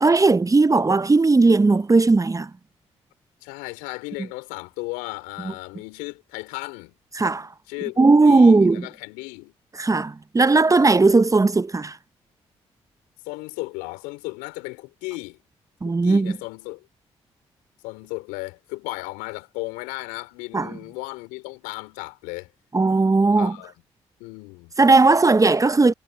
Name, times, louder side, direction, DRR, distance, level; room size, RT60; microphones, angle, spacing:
voice 1, 0.0-2.5 7.1-7.5 8.0-8.9 9.8-12.0 15.8-16.3 20.5-20.7 22.7-23.5 24.8-25.9, right 3 dB, 25° right, 1.0 m, -17 dB
voice 2, 3.4-6.9 7.7-9.5 13.2-15.4 15.8-16.9 17.8-22.5 23.4-23.7 24.2-24.7, left 25 dB, 75° left, 4.5 m, -35 dB
hypercardioid pair, 40°, 14 cm